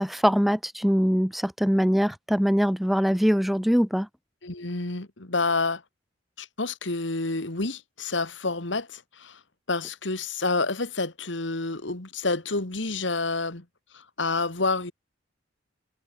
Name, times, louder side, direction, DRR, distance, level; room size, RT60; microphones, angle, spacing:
voice 1, 0.0-4.1, equal, ahead, 0.3 m, -22 dB
voice 2, 4.4-5.8 6.4-9.4 9.7-13.7 13.9-14.9, left 3 dB, 70° left, 2.2 m, -29 dB
head